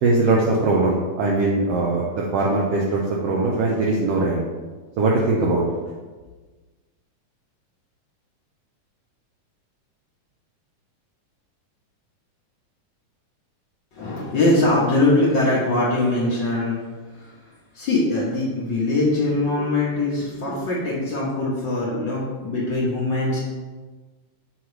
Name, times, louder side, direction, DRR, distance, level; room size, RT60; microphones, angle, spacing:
voice 1, 0.0-4.5 5.0-5.6, right 2 dB, 80° right, -3 dB, 1.4 m, -21 dB
voice 2, 13.9-16.8 17.1-17.4 17.7-23.4, left 2 dB, 65° left, -5 dB, 1.1 m, -22 dB
7.6 x 3.1 x 4.7 m, 1.3 s
omnidirectional pair, 3.6 m